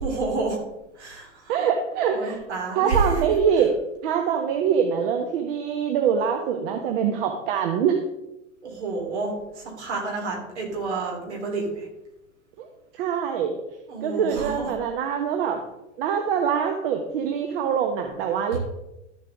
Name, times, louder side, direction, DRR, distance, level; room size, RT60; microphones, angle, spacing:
voice 1, 0.0-0.6 1.0-1.5 2.1-3.0 8.6-11.9 13.9-14.7, right 3 dB, 65° right, -1 dB, 3.6 m, -30 dB
voice 2, 1.5-2.4 2.7-3.7 4.0-8.0 12.6-12.7 12.9-13.6 14.0-15.6 16.0-18.6, right 7 dB, 50° right, 4 dB, 1.2 m, -24 dB
12.5 x 7.7 x 3.6 m, 0.94 s
figure-of-eight pair, 85°, 36 cm